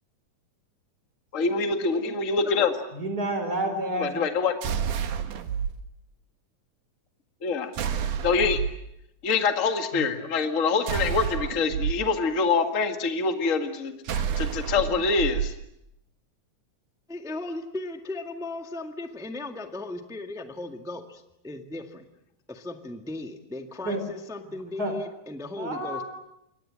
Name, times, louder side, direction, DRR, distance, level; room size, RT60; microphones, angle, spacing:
voice 1, 1.3-2.7 3.9-4.5 7.4-7.7 8.2-8.6 9.2-15.5, left 4 dB, 30° left, 6 dB, 1.7 m, -25 dB
voice 2, 2.9-4.1 9.9-10.1 23.9-24.0 24.8-24.9 25.6-26.0, right 1 dB, 25° right, 6 dB, 5.3 m, -29 dB
sound 1, 4.6-5.7 7.7-8.8 10.9-11.9 14.1-15.5, right 8 dB, 65° right, 2.8 m, -29 dB
voice 3, 17.1-22.1 22.5-26.0, left 2 dB, 5° right, 5 dB, 0.5 m, -37 dB
28.0 x 23.5 x 7.7 m, 0.81 s
omnidirectional pair, 4.0 m